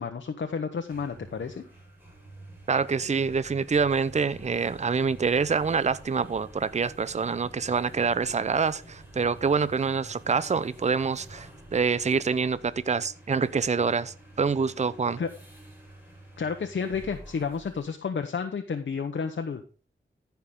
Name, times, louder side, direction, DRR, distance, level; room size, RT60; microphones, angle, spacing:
voice 1, 0.0-1.6 15.2-15.3 16.4-19.6, left 5 dB, 65° left, 1.0 m, -31 dB
sound 1, 0.7-17.9, right 1 dB, 10° right, 5.2 m, -48 dB
voice 2, 2.7-15.2, right 5 dB, 35° right, 0.6 m, -26 dB
14.5 x 5.9 x 3.8 m
wide cardioid pair, 75°, 20 cm